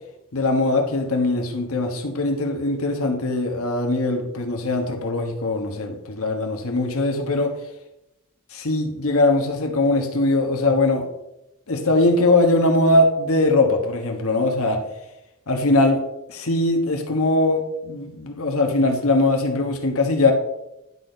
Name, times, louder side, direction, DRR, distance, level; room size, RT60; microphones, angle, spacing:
voice 1, 0.3-7.5 8.5-11.1 11.7-14.8 15.5-16.0 16.3-20.3, left 2 dB, 65° left, 3 dB, 1.3 m, -21 dB
11.0 x 4.2 x 5.2 m, 0.90 s
head